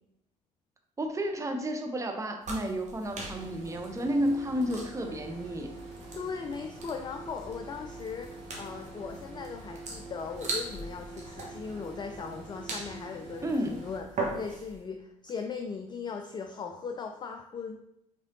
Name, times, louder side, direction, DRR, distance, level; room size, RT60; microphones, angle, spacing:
voice 1, 1.0-5.7 13.4-13.8, equal, 15° right, 5 dB, 0.6 m, -31 dB
sound 1, 2.4-14.8, right 2 dB, 40° right, 1.2 m, -41 dB
sound 2, 3.3-14.0, right 2 dB, 60° right, 1.2 m, -45 dB
voice 2, 6.1-17.8, left 5 dB, 25° left, 4 dB, 0.4 m, -39 dB
4.8 x 3.7 x 2.7 m, 0.80 s
figure-of-eight pair, 50°, 19 cm